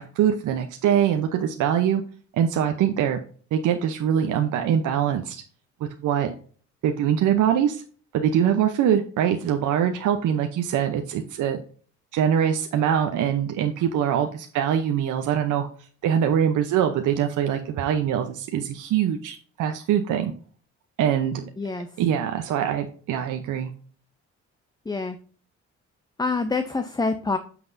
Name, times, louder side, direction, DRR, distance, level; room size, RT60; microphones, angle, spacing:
voice 1, 0.0-2.0 2.3-3.2 3.5-5.4 5.8-6.3 6.8-7.8 8.1-11.6 12.1-15.7 16.0-20.3 21.0-21.4 22.0-23.7, right 9 dB, 85° right, 5 dB, 0.8 m, -23 dB
voice 2, 21.6-21.9 24.9-25.2 26.2-27.4, left 3 dB, 15° left, 9 dB, 0.6 m, -26 dB
9.3 x 6.0 x 2.6 m, 0.42 s
cardioid pair, 90°, 30 cm